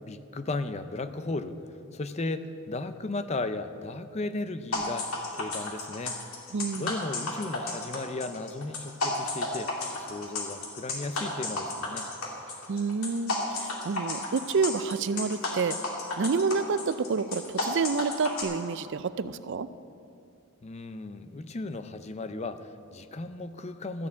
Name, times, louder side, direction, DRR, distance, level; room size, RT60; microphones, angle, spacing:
voice 1, 0.0-1.6 1.9-6.2 6.7-9.7 10.0-12.0 20.6-24.1, left 2 dB, 30° left, 11 dB, 0.5 m, -35 dB
sound 1, 4.7-18.4, left 2 dB, 75° left, 2.4 m, -32 dB
voice 2, 6.5-6.9 12.7-15.8 16.2-19.7, right 4 dB, 55° right, 14 dB, 0.4 m, -28 dB
13.5 x 7.1 x 8.3 m, 2.5 s
head